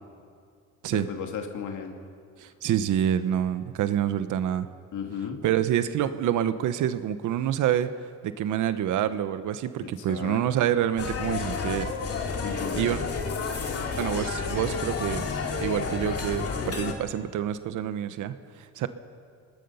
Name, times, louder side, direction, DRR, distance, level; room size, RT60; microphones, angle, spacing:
voice 1, 0.9-1.9 4.9-5.4 9.8-10.4 12.4-12.9, left 7 dB, 75° left, 3 dB, 2.6 m, -35 dB
voice 2, 2.4-4.7 5.4-7.9 8.2-11.9 12.8-13.0 14.0-15.3 15.6-18.9, right 10 dB, 85° right, 12 dB, 1.1 m, -27 dB
sound 1, 11.0-16.9, left 5 dB, 50° left, 2.4 m, -30 dB
26.5 x 20.0 x 5.7 m, 2.2 s
cardioid pair, 90°, 30 cm